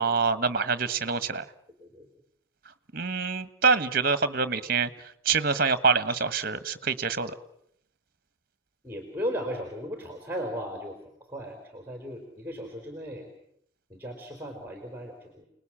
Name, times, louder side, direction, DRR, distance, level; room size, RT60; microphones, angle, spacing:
voice 1, 0.0-1.4 2.9-4.9 5.2-7.3, right 5 dB, 45° right, 14 dB, 1.3 m, -25 dB
voice 2, 8.8-11.0 11.3-13.3 13.9-15.4, equal, 10° right, 4 dB, 3.8 m, -36 dB
29.5 x 20.0 x 8.7 m, 0.73 s
head